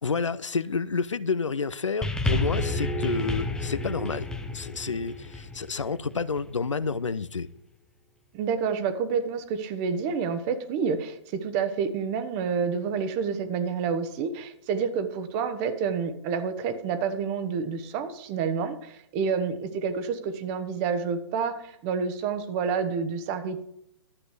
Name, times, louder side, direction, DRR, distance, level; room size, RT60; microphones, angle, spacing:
voice 1, 0.0-4.3 4.5-7.5, left 5 dB, 80° left, 16 dB, 0.6 m, -29 dB
sound 1, 2.0-6.6 7.4-7.5, left 1 dB, 5° left, 0.8 m, -30 dB
voice 2, 8.3-23.6, right 6 dB, 30° right, 10 dB, 1.2 m, -29 dB
12.0 x 7.9 x 4.8 m, 0.76 s
figure-of-eight pair, 125°, 16 cm